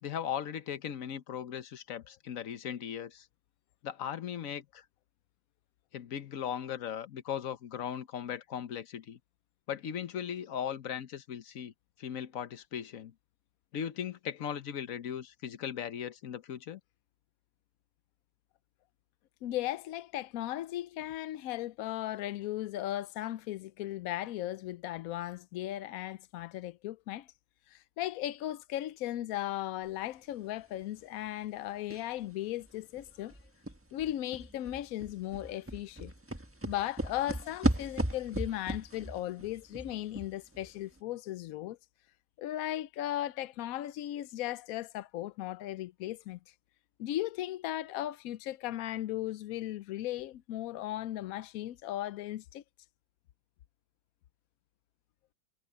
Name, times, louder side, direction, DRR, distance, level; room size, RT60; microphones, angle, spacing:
voice 1, 0.0-3.3 3.8-4.8 5.9-9.2 9.7-11.7 12.0-13.1 13.7-16.8, left 9 dB, 55° left, 1.1 m, -38 dB
voice 2, 19.4-27.3 27.7-33.4 33.9-36.1 36.6-41.8 42.4-46.4 47.0-52.6, left 13 dB, 80° left, 0.7 m, -37 dB
sound 1, 31.9-32.2 32.6-32.7 33.0-40.7 41.0-41.1, right 1 dB, 10° right, 1.1 m, -36 dB
omnidirectional pair, 2.1 m